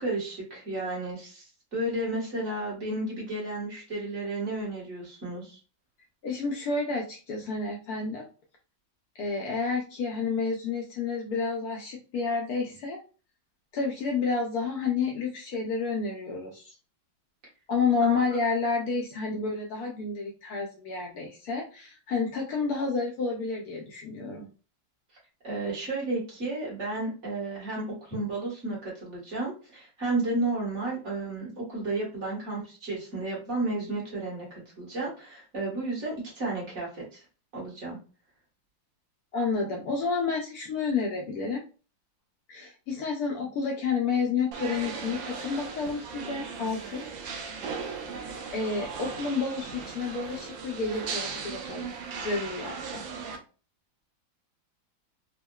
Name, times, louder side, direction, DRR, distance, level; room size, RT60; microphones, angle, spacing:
voice 1, 0.0-1.4 1.7-5.6 18.0-18.2 25.4-37.2 37.5-38.0, right 2 dB, 40° right, -4 dB, 1.4 m, -32 dB
voice 2, 6.2-8.2 9.2-13.0 13.7-16.8 17.7-24.5 39.3-41.6 42.5-47.3 48.5-53.0, left 4 dB, 80° left, 0 dB, 0.8 m, -30 dB
sound 1, 44.5-53.4, right 5 dB, 75° right, 1.2 m, -37 dB
3.6 x 2.1 x 2.2 m, 0.35 s
omnidirectional pair, 2.2 m